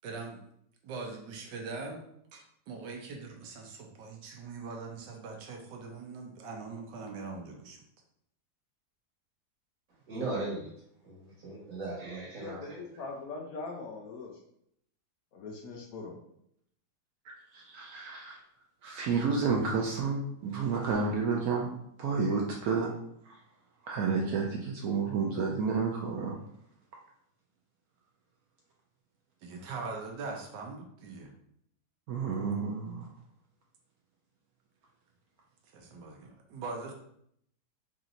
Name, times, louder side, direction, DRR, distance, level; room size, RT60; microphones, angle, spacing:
voice 1, 0.0-0.4 0.8-2.0 2.3-7.8 29.4-31.3 35.7-36.9, right 4 dB, 90° right, 2 dB, 1.4 m, -41 dB
voice 2, 10.1-10.7 11.0-12.8, right 2 dB, 55° right, -5 dB, 1.7 m, -37 dB
voice 3, 12.3-14.4 15.3-16.1, left 4 dB, 65° left, 0 dB, 1.0 m, -41 dB
voice 4, 17.2-18.4 18.8-21.7 22.0-22.9 23.2-23.4 23.8-26.4 32.1-33.1, right 5 dB, 70° right, -1 dB, 0.9 m, -30 dB
4.9 x 2.8 x 2.5 m, 0.71 s
omnidirectional pair, 1.8 m